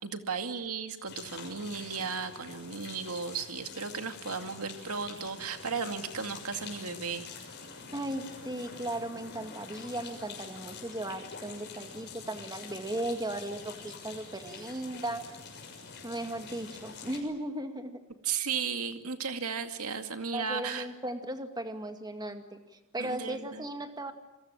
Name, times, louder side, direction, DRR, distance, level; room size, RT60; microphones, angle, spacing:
voice 1, 0.0-7.3 18.2-20.9 23.0-23.7, right 5 dB, 80° right, 6 dB, 2.3 m, -35 dB
sound 1, 1.1-17.2, left 4 dB, 50° left, 6.5 m, -46 dB
voice 2, 7.9-15.4 16.0-18.0 20.3-24.1, right 1 dB, 20° right, 6 dB, 2.1 m, -37 dB
29.0 x 22.0 x 8.9 m, 1.0 s
head